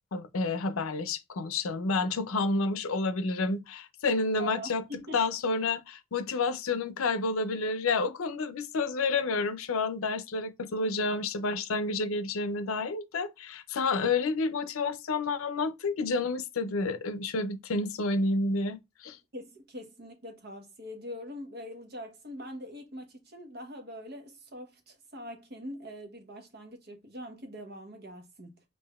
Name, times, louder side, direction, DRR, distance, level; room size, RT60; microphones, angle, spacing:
voice 1, 0.1-4.8 5.1-19.2, left 3 dB, 90° left, 0.5 m, -30 dB
voice 2, 4.4-5.2 19.3-28.6, left 1 dB, 50° right, 1.0 m, -43 dB
5.4 x 2.6 x 2.3 m
head